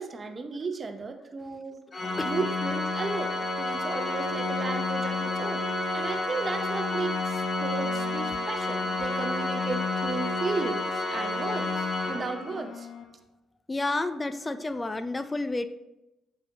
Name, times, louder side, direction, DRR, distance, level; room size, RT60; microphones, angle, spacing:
voice 1, 0.0-1.8 2.2-12.9 14.6-14.7, right 4 dB, 35° right, 6 dB, 0.7 m, -34 dB
Organ, 1.9-12.7, left 2 dB, 40° left, 0.8 m, -30 dB
sound 1, 3.8-13.0, left 2 dB, 75° left, 1.0 m, -45 dB
voice 2, 13.7-15.7, left 2 dB, 20° left, 12 dB, 0.4 m, -30 dB
7.5 x 5.1 x 2.8 m, 0.93 s
cardioid pair, 75°, 0 cm